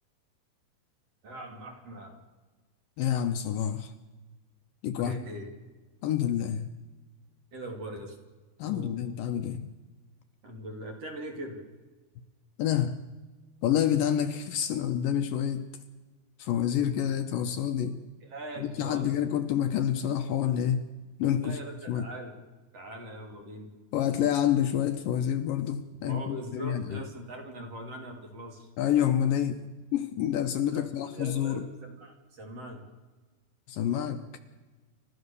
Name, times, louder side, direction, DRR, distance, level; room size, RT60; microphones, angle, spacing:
voice 1, 1.2-2.2 5.0-5.5 7.5-8.1 8.6-9.1 10.4-11.6 18.2-19.3 21.4-22.4 22.7-23.7 26.0-28.7 30.7-32.8, right 1 dB, 45° right, 2 dB, 3.3 m, -41 dB
voice 2, 3.0-3.9 4.8-5.2 6.0-6.7 8.6-9.7 12.6-13.0 13.6-15.6 16.4-18.0 18.6-20.8 21.2-21.6 21.9-22.1 23.9-27.0 28.8-29.6 29.9-31.6 33.7-34.2, left 10 dB, 70° left, 7 dB, 2.4 m, -28 dB
29.5 x 13.5 x 6.9 m, 1.3 s
omnidirectional pair, 4.4 m